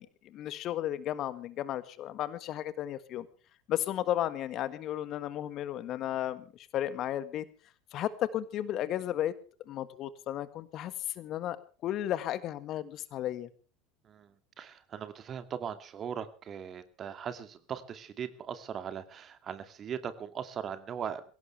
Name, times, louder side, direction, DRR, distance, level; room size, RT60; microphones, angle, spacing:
voice 1, 0.0-3.3 3.7-7.5 7.9-9.3 9.7-11.6 11.8-13.5, left 12 dB, 45° left, 14 dB, 1.6 m, -34 dB
voice 2, 14.0-21.2, right 8 dB, 35° right, 10 dB, 2.3 m, -39 dB
22.5 x 17.5 x 3.3 m, 0.39 s
figure-of-eight pair, 75°, 0 cm